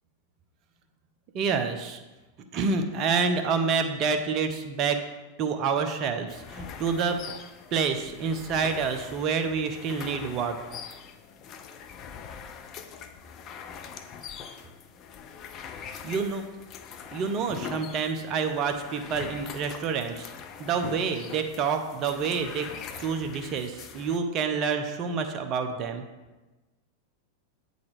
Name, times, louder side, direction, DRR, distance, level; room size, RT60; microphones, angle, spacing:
voice 1, 1.3-2.0 2.5-5.0 5.4-7.2 7.7-10.6 16.0-16.4 17.1-20.3 20.6-22.7 23.0-26.0, right 5 dB, 35° right, 6 dB, 0.7 m, -28 dB
sound 1, 6.3-24.2, left 7 dB, 35° left, 0.5 m, -43 dB
8.6 x 4.0 x 4.7 m, 1.1 s
figure-of-eight pair, 90°, 0 cm